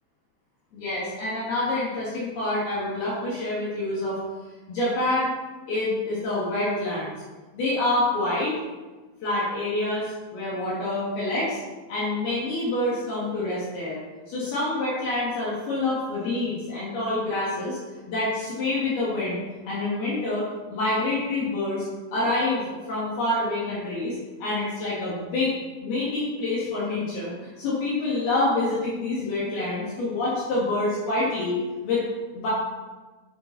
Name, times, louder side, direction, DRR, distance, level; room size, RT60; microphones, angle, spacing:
voice 1, 0.7-4.2 4.7-5.3 5.7-7.1 7.5-8.5 9.2-11.6 11.9-14.0 14.3-17.8 18.1-21.9 22.1-25.5 25.8-31.6 31.8-32.0 32.3-32.5, left 2 dB, 60° left, -7 dB, 3.7 m, -27 dB
9.1 x 9.1 x 4.1 m, 1.3 s
omnidirectional pair, 5.5 m